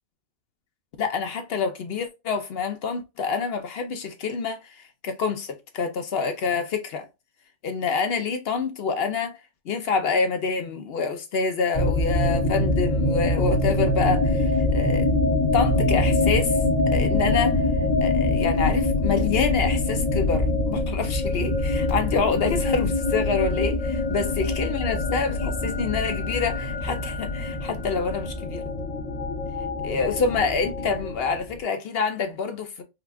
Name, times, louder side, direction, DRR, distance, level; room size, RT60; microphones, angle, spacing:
voice 1, 1.0-7.1 7.6-9.4 9.7-15.1 15.5-16.6 16.9-17.6 18.0-28.7 29.8-32.8, left 5 dB, 65° left, 0.7 m, -27 dB
sound 1, 11.7-31.6, left 2 dB, 90° left, 1.9 m, -24 dB
4.9 x 2.2 x 2.3 m
omnidirectional pair, 1.2 m